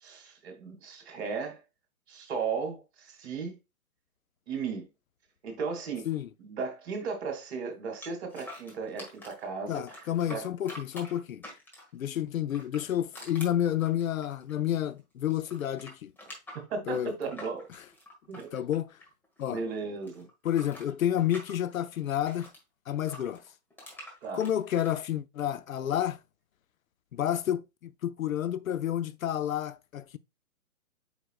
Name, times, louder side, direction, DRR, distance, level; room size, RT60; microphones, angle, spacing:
voice 1, 0.0-1.6 2.1-3.6 4.5-4.9 5.4-6.1 6.4-10.5 16.7-17.7 18.3-18.5 19.5-20.3 24.2-24.4, right 5 dB, 45° right, 2.5 m, -36 dB
sound 1, 8.0-9.5 9.9-12.0 12.5-15.0 15.2-19.4 19.7-22.6 23.1-25.0, equal, 5° left, 1.5 m, -47 dB
voice 2, 9.7-11.4 11.9-16.1 16.9-17.1 18.5-18.9 19.4-19.6 20.4-22.5 22.9-23.4 24.3-26.2 27.1-30.2, left 11 dB, 70° left, 0.6 m, -30 dB
8.1 x 5.1 x 2.4 m
hypercardioid pair, 135°, 43 cm